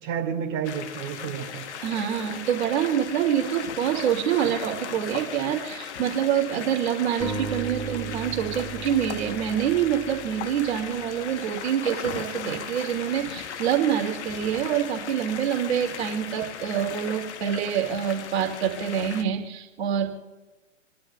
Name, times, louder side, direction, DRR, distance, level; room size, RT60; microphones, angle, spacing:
voice 1, 0.0-1.6, right 8 dB, 35° right, -1 dB, 2.3 m, -30 dB
sound 1, 0.6-19.2, left 8 dB, 65° left, 1.1 m, -37 dB
voice 2, 1.8-20.1, right 9 dB, 55° right, 2 dB, 2.4 m, -26 dB
sound 2, 7.2-10.8, right 4 dB, 5° right, 3.5 m, -36 dB
27.5 x 11.5 x 2.4 m, 1.1 s
hypercardioid pair, 130°, 37 cm